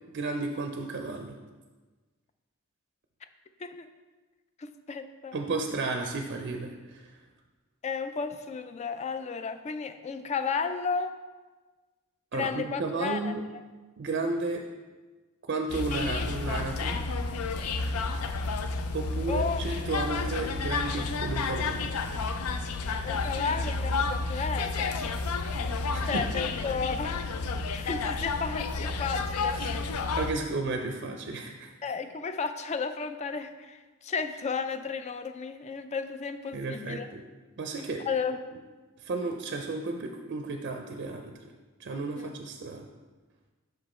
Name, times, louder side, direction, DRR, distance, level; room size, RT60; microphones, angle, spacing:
voice 1, 0.1-1.4 5.3-7.0 12.3-13.4 14.0-14.6 15.5-17.0 18.9-21.9 25.9-26.2 29.6-29.8 30.1-31.7 36.5-37.2 37.6-38.1 39.0-41.3 41.8-42.9, right 3 dB, 50° right, 4 dB, 0.5 m, -33 dB
voice 2, 4.6-5.4 7.8-11.2 12.3-13.6 19.3-19.6 22.9-25.0 26.0-27.2 27.7-29.6 31.8-37.1 38.0-38.4 42.2-42.3, left 5 dB, 30° left, 10 dB, 0.3 m, -33 dB
sound 1, 15.7-30.3, left 3 dB, 90° left, 0.5 m, -31 dB
6.2 x 5.2 x 4.2 m, 1.3 s
head